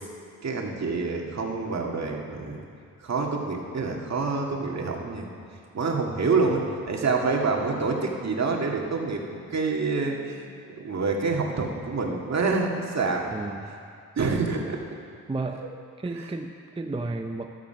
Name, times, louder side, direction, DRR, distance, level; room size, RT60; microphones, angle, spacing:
voice 1, 0.4-2.6 3.0-5.3 5.7-13.3 14.2-14.8 15.5-15.7 16.2-16.3, right 4 dB, 50° right, 0 dB, 2.0 m, -27 dB
voice 2, 13.3-13.7 15.3-15.6 16.0-17.5, right 3 dB, 15° right, 4 dB, 0.6 m, -32 dB
13.5 x 12.0 x 5.8 m, 2.4 s
cardioid pair, 85°, 35 cm